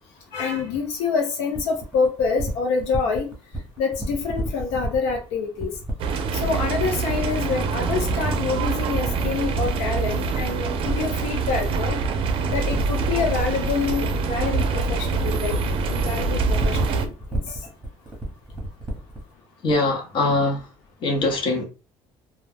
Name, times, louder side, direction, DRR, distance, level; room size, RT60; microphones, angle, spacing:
voice 1, 0.3-3.3 3.8-5.7 6.3-12.0 12.5-15.6 15.9-17.4, left 5 dB, 85° left, 0.8 m, -26 dB
sound 1, 1.5-19.3, right 1 dB, 10° right, 0.9 m, -32 dB
sound 2, 6.0-17.1, right 4 dB, 50° right, 0.5 m, -25 dB
voice 2, 19.6-20.6 21.0-21.6, left 2 dB, 45° left, 0.8 m, -22 dB
2.3 x 2.2 x 3.4 m
cardioid pair, 135°, 12 cm